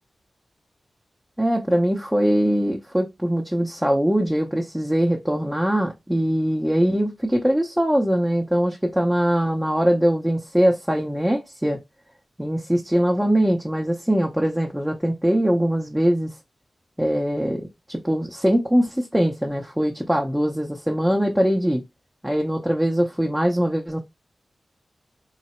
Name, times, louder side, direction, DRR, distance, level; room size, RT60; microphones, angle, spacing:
voice 1, 1.4-11.8 12.4-16.3 17.0-21.8 22.2-24.0, equal, 5° right, 0.7 m, -22 dB
3.8 x 2.1 x 4.2 m
cardioid pair, 60°, 0 cm